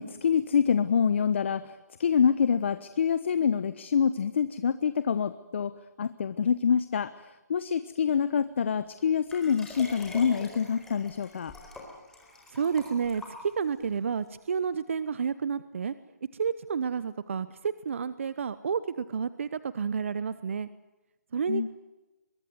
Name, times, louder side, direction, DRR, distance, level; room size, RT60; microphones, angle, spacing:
voice 1, 0.0-1.7 2.0-5.7 6.0-7.1 7.5-11.5 21.5-21.7, left 7 dB, 45° left, 13 dB, 1.1 m, -26 dB
Liquid, 9.3-13.8 14.5-14.6, left 2 dB, 5° left, 4.4 m, -45 dB
voice 2, 12.5-15.9 16.3-20.7 21.3-21.7, right 6 dB, 45° right, 14 dB, 1.0 m, -30 dB
23.5 x 23.5 x 9.5 m, 1.0 s
hypercardioid pair, 160°, 9 cm